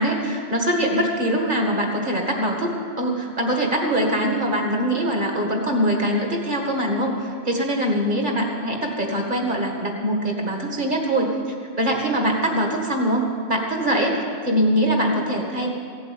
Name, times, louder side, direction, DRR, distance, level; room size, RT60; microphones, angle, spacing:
voice 1, 0.0-2.7 3.0-11.3 11.8-14.2 14.4-15.7, equal, 50° right, 1 dB, 2.1 m, -23 dB
15.5 x 8.0 x 8.9 m, 2.2 s
omnidirectional pair, 1.1 m